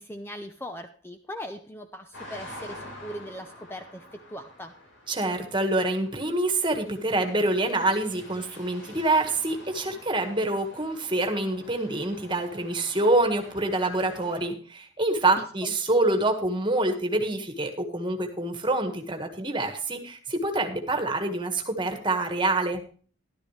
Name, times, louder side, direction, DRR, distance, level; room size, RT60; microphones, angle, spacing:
voice 1, 0.0-4.8 15.4-15.8, equal, 10° left, 7 dB, 0.7 m, -40 dB
sound 1, 2.1-14.5, left 1 dB, 75° left, 4.9 m, -47 dB
voice 2, 5.1-22.8, right 2 dB, 25° right, 4 dB, 1.7 m, -26 dB
13.0 x 12.0 x 3.3 m, 0.41 s
head